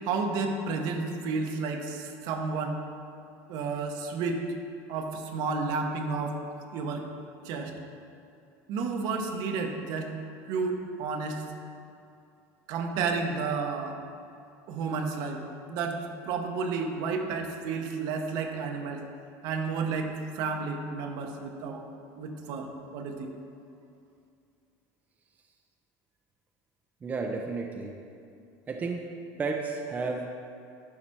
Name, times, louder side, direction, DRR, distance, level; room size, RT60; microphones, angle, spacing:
voice 1, 0.0-2.8 3.5-4.4 4.9-6.4 6.7-7.0 7.4-7.7 8.7-10.1 10.5-11.4 12.7-14.0 14.7-15.4 15.7-19.0 19.4-21.8 22.2-23.3, right 4 dB, 60° right, 4 dB, 1.0 m, -31 dB
voice 2, 27.0-27.9 28.7-29.1 29.4-30.3, right 4 dB, 20° right, 2 dB, 0.6 m, -32 dB
11.0 x 4.9 x 4.5 m, 2.5 s
cardioid pair, 140°, 8 cm